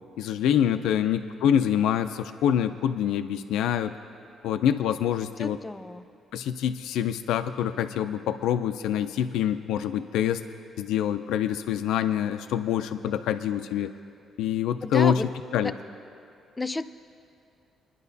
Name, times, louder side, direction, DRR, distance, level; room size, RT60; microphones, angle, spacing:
voice 1, 0.2-3.9 4.4-5.6 6.3-10.4 10.8-13.9 14.4-15.2 15.5-15.7, left 9 dB, 90° left, 9 dB, 0.4 m, -25 dB
voice 2, 0.8-1.1 5.4-6.0 13.0-13.1 14.8-15.3 15.6-15.7 16.6-16.9, left 2 dB, 20° left, 10 dB, 0.5 m, -32 dB
24.5 x 10.5 x 2.7 m, 2.6 s
cardioid pair, 90°, 0 cm